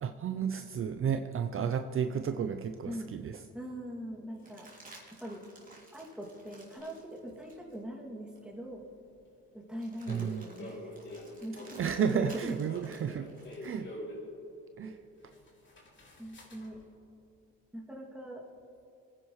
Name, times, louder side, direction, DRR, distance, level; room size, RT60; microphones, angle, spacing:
voice 1, 0.0-3.4 10.1-10.4 11.7-13.3 13.6-13.9 14.8-15.0, right 7 dB, 45° right, 8 dB, 0.6 m, -32 dB
voice 2, 3.5-4.7 5.2-5.4 5.9-8.9 9.5-11.0 11.4-11.8 12.1-12.6 16.2-16.8 17.7-18.4, equal, 5° right, -2 dB, 2.4 m, -41 dB
sound 1, 4.3-7.8 8.3-8.5 9.7-13.8 16.0-16.9, right 2 dB, 25° right, 3.2 m, -56 dB
sound 2, 6.8-6.9 10.1-14.3 14.9-15.0 15.2-16.7, left 1 dB, 40° left, 3.0 m, -45 dB
22.0 x 10.0 x 3.2 m, 2.7 s
cardioid pair, 90°, 30 cm